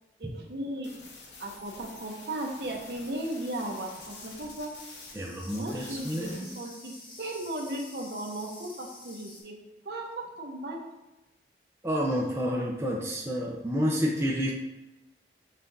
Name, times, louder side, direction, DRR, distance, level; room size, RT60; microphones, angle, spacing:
voice 1, 0.2-0.9 1.4-4.7 5.5-9.6 9.8-10.8, right 1 dB, 60° right, 1 dB, 0.7 m, -36 dB
sound 1, 0.8-5.1 5.4-6.6, left 3 dB, 75° left, 0.9 m, -48 dB
sound 2, 1.1-9.4, left 2 dB, 25° left, 0.8 m, -51 dB
voice 2, 5.1-6.6 11.8-14.5, equal, 15° right, -3 dB, 0.4 m, -29 dB
5.7 x 2.4 x 3.9 m, 1.0 s
head